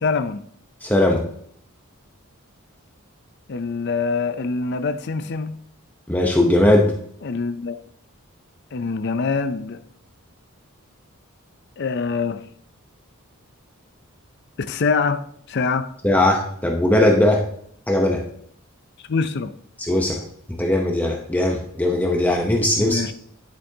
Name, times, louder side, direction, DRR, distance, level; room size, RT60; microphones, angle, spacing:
voice 1, 0.0-0.4 3.5-5.6 7.2-7.8 8.7-9.8 11.8-12.4 14.6-15.9 19.1-19.5 22.8-23.1, left 4 dB, 50° left, 0.5 m, -24 dB
voice 2, 0.8-1.2 6.1-6.9 16.0-17.5 17.9-18.2 19.8-20.2 20.5-23.1, left 1 dB, 10° left, 0.7 m, -19 dB
10.5 x 8.3 x 2.8 m
head